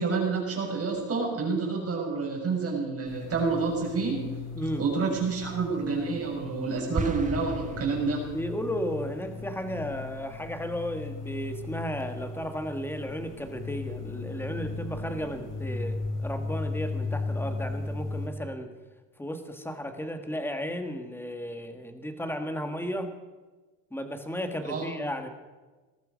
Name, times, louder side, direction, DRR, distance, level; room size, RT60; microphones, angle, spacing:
voice 1, 0.0-4.3 4.8-8.2 24.6-24.9, right 4 dB, 35° right, 0 dB, 6.2 m, -28 dB
sound 1, 3.1-18.3, left 3 dB, 45° left, 3.5 m, -37 dB
sound 2, 7.0-8.6, right 5 dB, 15° right, 1.2 m, -35 dB
voice 2, 8.3-18.7 19.2-23.1 23.9-25.3, equal, 5° left, 6 dB, 1.8 m, -34 dB
19.0 x 13.5 x 5.3 m, 1.3 s
supercardioid pair, 115°, 43 cm